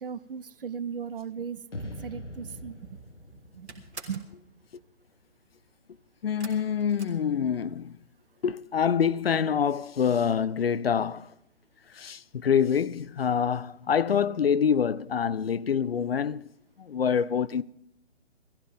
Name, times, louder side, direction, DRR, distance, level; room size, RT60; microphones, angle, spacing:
voice 1, 0.0-3.0 3.5-3.7 4.1-4.2, right 7 dB, 50° right, 0.7 m, -37 dB
sound 1, 1.7-4.9, left 1 dB, 85° left, 1.5 m, -43 dB
sound 2, 2.7-3.0 3.3-4.4 6.4-7.9 8.2-8.8 9.1-9.2 9.5-9.6, right 3 dB, 70° right, 3.1 m, -47 dB
voice 2, 6.2-8.0 8.4-11.3 11.9-16.5 16.8-17.6, left 7 dB, 55° left, 0.5 m, -26 dB
19.0 x 15.0 x 3.6 m
figure-of-eight pair, 135°, 35 cm